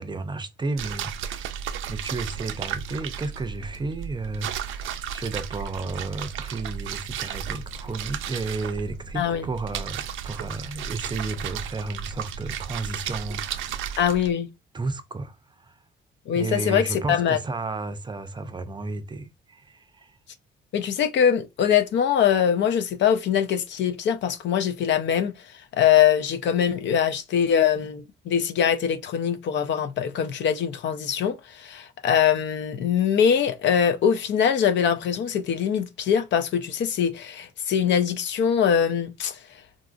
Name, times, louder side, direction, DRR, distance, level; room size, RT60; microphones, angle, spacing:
voice 1, 0.0-1.6 1.9-14.0 14.7-15.8 16.3-20.2, right 3 dB, 25° right, 0.5 m, -33 dB
sound 1, 0.8-14.3, right 8 dB, 80° right, 0.4 m, -34 dB
voice 2, 9.2-9.5 14.0-14.5 16.3-17.4 20.7-25.3 25.7-39.4, left 8 dB, 65° left, 0.5 m, -23 dB
3.8 x 2.4 x 2.4 m
cardioid pair, 90°, 20 cm